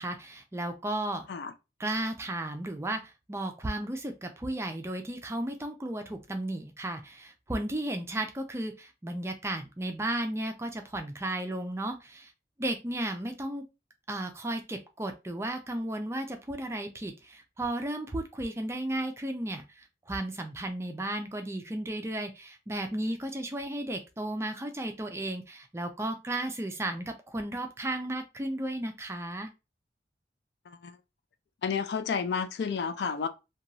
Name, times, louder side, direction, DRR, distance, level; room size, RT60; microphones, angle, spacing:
voice 1, 0.0-1.2 1.8-12.3 12.6-13.6 14.1-29.5, right 1 dB, 15° right, 0.3 m, -34 dB
voice 2, 31.6-33.3, left 6 dB, 65° left, 0.4 m, -31 dB
2.9 x 2.2 x 2.6 m
head